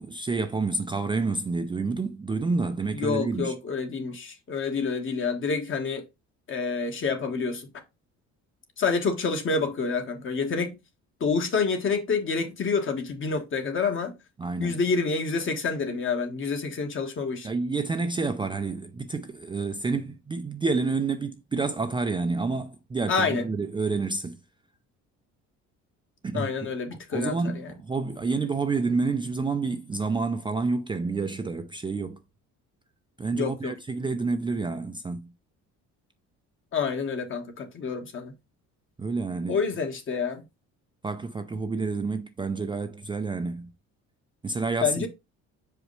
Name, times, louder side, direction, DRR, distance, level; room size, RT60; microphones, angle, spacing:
voice 1, 0.0-3.5 14.4-14.8 17.4-24.4 26.2-26.5 26.9-32.2 33.2-35.3 39.0-39.6 41.0-43.7 44.4-45.1, right 4 dB, 15° right, 0.4 m, -29 dB
voice 2, 2.9-6.0 6.5-7.7 8.8-10.8 11.2-14.2 14.6-17.5 23.1-23.5 26.3-27.7 33.3-33.7 36.7-38.3 39.5-40.4 44.8-45.1, left 5 dB, 40° left, 1.3 m, -28 dB
6.4 x 5.0 x 3.1 m
cardioid pair, 135°, 30 cm